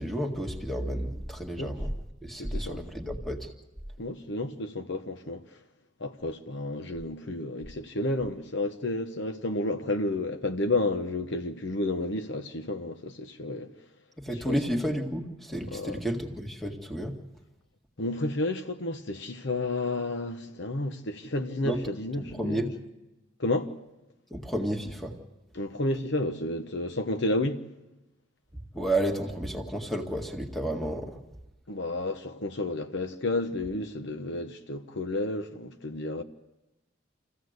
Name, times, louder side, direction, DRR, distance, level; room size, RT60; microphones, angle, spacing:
voice 1, 0.0-1.9 2.2-3.5 14.2-17.1 21.6-21.8 22.2-22.7 24.3-25.1 28.7-31.2, right 1 dB, ahead, 1.9 m, -31 dB
voice 2, 2.4-2.8 4.0-5.4 6.0-13.7 14.3-14.6 15.7-16.0 18.0-22.7 23.4-23.7 25.5-27.6 31.7-36.2, left 2 dB, 60° left, 1.1 m, -31 dB
27.5 x 15.5 x 8.0 m
head